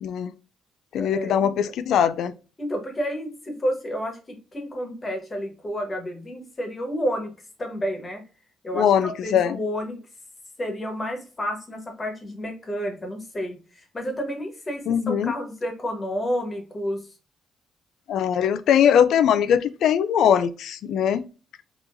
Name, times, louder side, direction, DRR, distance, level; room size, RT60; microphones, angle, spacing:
voice 1, 0.0-0.3 0.9-2.3 8.7-9.6 14.9-15.3 18.1-21.3, left 8 dB, 75° left, 0.3 m, -21 dB
voice 2, 0.9-1.7 2.6-7.3 7.6-8.2 8.6-10.0 10.6-17.1, equal, 30° left, 1.3 m, -30 dB
3.8 x 2.9 x 2.5 m
cardioid pair, 90°, 0 cm